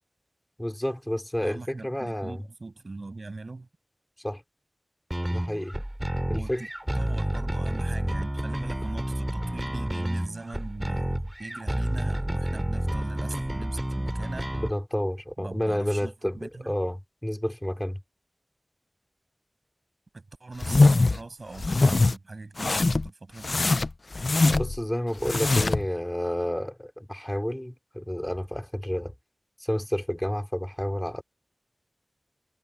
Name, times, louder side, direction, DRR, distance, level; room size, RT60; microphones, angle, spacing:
voice 1, 0.6-2.4 4.2-4.4 5.3-5.8 6.3-6.6 14.5-18.0 24.5-29.1 29.6-31.2, equal, 10° left, 3.0 m, -30 dB
voice 2, 1.4-3.7 6.3-6.7 6.9-14.5 15.4-16.7 20.1-23.7, right 3 dB, 65° right, 7.3 m, -41 dB
sound 1, 5.1-14.7, right 1 dB, 15° right, 4.7 m, -30 dB
sound 2, 20.6-21.2 21.6-22.1 22.6-23.1 23.4-24.8 25.2-25.9, left 3 dB, 65° left, 0.7 m, -22 dB
wide cardioid pair, 45°, 0 cm